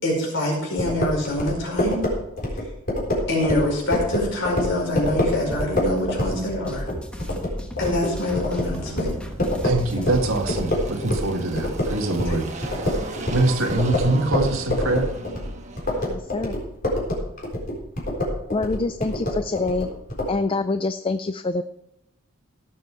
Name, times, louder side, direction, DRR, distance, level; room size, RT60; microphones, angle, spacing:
voice 1, 0.0-2.0 2.6-2.7 3.3-6.9 7.8-9.1 12.2-12.4, left 1 dB, 60° left, -1 dB, 5.2 m, -25 dB
sound 1, 0.8-11.3 11.5-20.3, left 1 dB, 45° left, 3.9 m, -26 dB
sound 2, 5.0-10.7, equal, 5° left, 1.3 m, -37 dB
Engine, 8.6-16.1, right 2 dB, 35° right, 1.3 m, -37 dB
voice 2, 9.6-12.4 13.3-15.1, right 2 dB, 75° right, 4 dB, 1.6 m, -23 dB
voice 3, 16.1-16.6 18.5-19.9 20.3-21.6, left 3 dB, 25° left, 11 dB, 0.4 m, -25 dB
17.0 x 7.5 x 4.7 m, 0.80 s
head